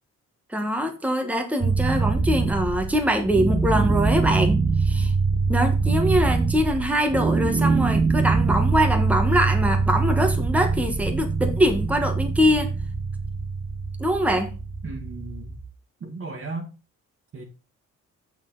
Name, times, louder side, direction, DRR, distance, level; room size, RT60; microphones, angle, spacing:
voice 1, 0.5-5.1 5.5-12.7 14.0-14.5, equal, 5° right, 1.3 m, -23 dB
sound 1, 1.6-15.6, right 4 dB, 20° right, 0.9 m, -24 dB
voice 2, 14.8-15.6 16.0-16.7 17.3-17.4, right 3 dB, 45° right, 1.8 m, -35 dB
6.6 x 6.4 x 3.9 m
cardioid pair, 90°, 30 cm